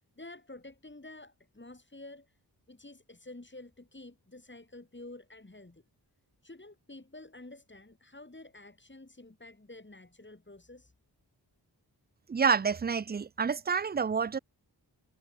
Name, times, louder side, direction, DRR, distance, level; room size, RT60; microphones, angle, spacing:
voice 1, 0.2-2.4 2.7-5.8 6.4-10.9, left 2 dB, 25° left, 7.7 m, -50 dB
voice 2, 12.3-14.4, right 6 dB, 25° right, 0.4 m, -28 dB
wide cardioid pair, 65°, 41 cm